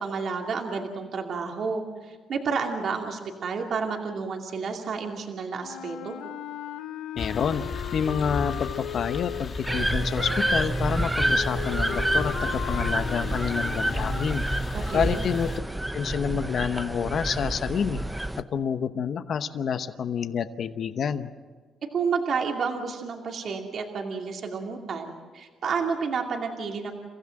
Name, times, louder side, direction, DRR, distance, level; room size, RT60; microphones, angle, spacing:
voice 1, 0.0-6.2 14.7-15.2 21.9-26.9, right 5 dB, 60° right, 2 dB, 2.6 m, -30 dB
sound 1, 5.6-14.3, left 10 dB, 90° left, 1.1 m, -37 dB
voice 2, 7.1-7.6 7.9-14.4 14.9-15.5 15.9-18.0 18.5-21.3, left 7 dB, 60° left, 11 dB, 0.9 m, -28 dB
sound 2, 7.2-15.6, left 4 dB, 45° left, 1.7 m, -36 dB
sound 3, 9.7-18.4, right 1 dB, 10° right, 0.9 m, -28 dB
29.0 x 15.5 x 7.7 m, 1.5 s
cardioid pair, 90°, 0 cm